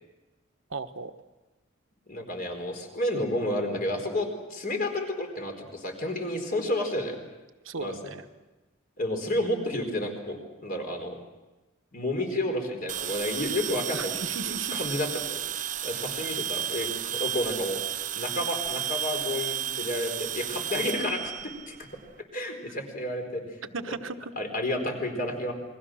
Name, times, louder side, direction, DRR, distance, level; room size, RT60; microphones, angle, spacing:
voice 1, 0.7-1.1 7.6-8.2 13.9-14.8 23.7-24.3, right 4 dB, 75° right, 8 dB, 1.2 m, -36 dB
voice 2, 2.1-7.2 7.8-7.9 9.0-11.2 11.9-14.2 14.7-17.8 18.2-21.8 22.3-23.6 24.4-25.5, left 1 dB, 45° left, 3 dB, 4.3 m, -31 dB
sound 1, 12.9-22.1, right 10 dB, 40° right, 0.7 m, -33 dB
28.5 x 22.0 x 6.3 m, 1.1 s
head